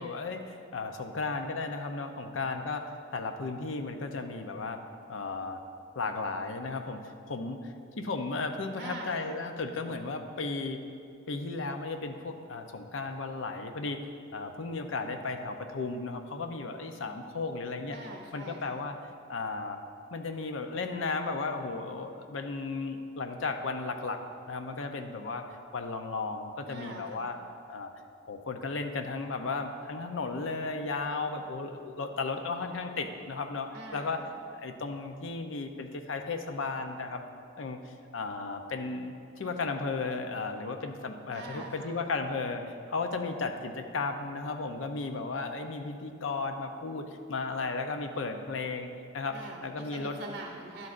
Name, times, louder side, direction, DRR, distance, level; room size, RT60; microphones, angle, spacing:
voice 1, 0.0-4.8 5.1-5.6 6.0-10.8 11.3-14.0 14.3-18.0 18.3-19.0 19.3-19.8 20.1-24.2 24.5-25.4 25.7-27.4 27.7-27.9 28.3-34.2 34.5-37.2 37.6-48.9 49.1-49.4 49.6-50.3, left 3 dB, 75° left, 6 dB, 0.6 m, -35 dB
voice 2, 8.8-9.4 17.9-18.8 26.7-27.3 33.7-34.3 41.3-42.2 49.3-50.9, right 2 dB, 45° right, 0 dB, 0.6 m, -44 dB
11.0 x 7.9 x 2.5 m, 2.4 s
head